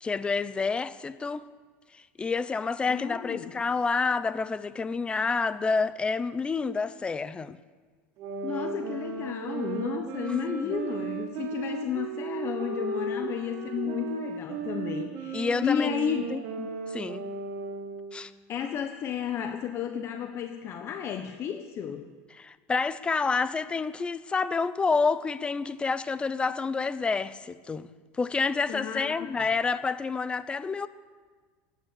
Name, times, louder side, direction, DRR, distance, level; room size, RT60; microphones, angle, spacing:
voice 1, 0.0-1.5 1.9-7.6 10.6-10.7 15.3-15.9 16.3-17.3 18.1-18.3 22.3-30.9, left 4 dB, 15° left, 0.6 m, -29 dB
voice 2, 2.9-3.5 8.4-16.3 18.5-22.1 28.7-29.3, left 8 dB, 40° left, 1.1 m, -32 dB
sound 1, 8.2-18.1, right 4 dB, 65° right, 2.9 m, -35 dB
16.5 x 9.6 x 8.5 m
supercardioid pair, 130°, 7 cm